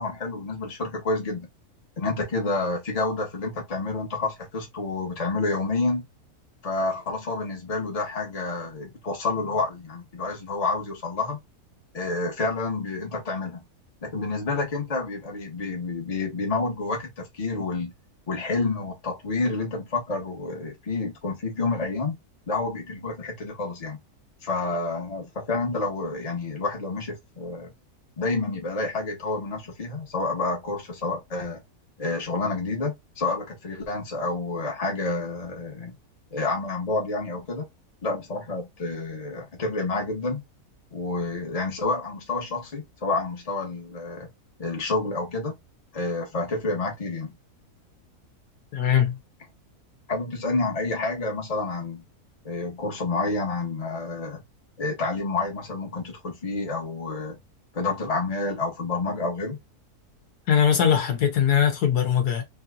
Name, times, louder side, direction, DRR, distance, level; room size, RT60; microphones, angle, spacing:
voice 1, 0.0-1.5 2.0-6.0 6.6-11.4 11.9-13.6 14.0-17.9 18.3-22.1 22.5-24.0 24.4-27.7 28.2-31.6 32.0-35.9 36.3-37.7 38.0-40.4 40.9-44.3 44.6-45.5 45.9-47.3 50.1-52.1 52.4-54.4 54.8-57.4 57.7-59.6, left 3 dB, 25° left, 1.0 m, -29 dB
voice 2, 48.7-49.2 60.5-62.4, left 8 dB, 85° left, 1.5 m, -21 dB
3.4 x 2.7 x 2.4 m
omnidirectional pair, 1.6 m